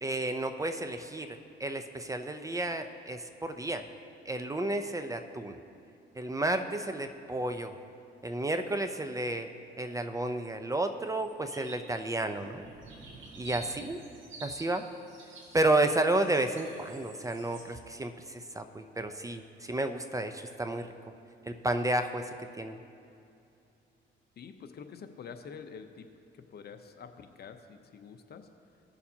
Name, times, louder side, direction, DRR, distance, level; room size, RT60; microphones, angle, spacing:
voice 1, 0.0-3.8 4.3-5.6 6.2-7.7 8.2-9.5 9.8-12.6 13.4-14.0 14.4-14.8 15.5-20.9 21.5-22.8, right 2 dB, 15° right, 7 dB, 0.5 m, -31 dB
sound 1, 11.2-11.9 12.3-17.6, right 2 dB, 75° right, 1.9 m, -49 dB
voice 2, 24.4-26.1 26.5-28.5, left 6 dB, 55° left, 7 dB, 0.8 m, -47 dB
17.5 x 6.8 x 2.8 m, 2.6 s
cardioid pair, 90°, 20 cm